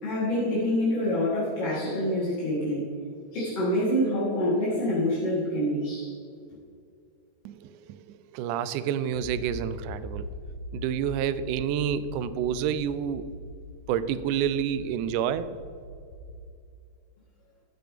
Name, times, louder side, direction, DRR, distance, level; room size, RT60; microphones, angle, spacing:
voice 1, 0.0-2.8 3.3-6.1, left 1 dB, 50° left, -10 dB, 3.4 m, -26 dB
voice 2, 7.5-10.3 10.7-13.2 13.9-15.5, right 9 dB, 85° right, 14 dB, 2.1 m, -29 dB
Accelerating revving vroom, 9.1-16.4, equal, 70° left, 2.5 m, -41 dB
14.0 x 6.9 x 5.1 m, 2.4 s
omnidirectional pair, 3.6 m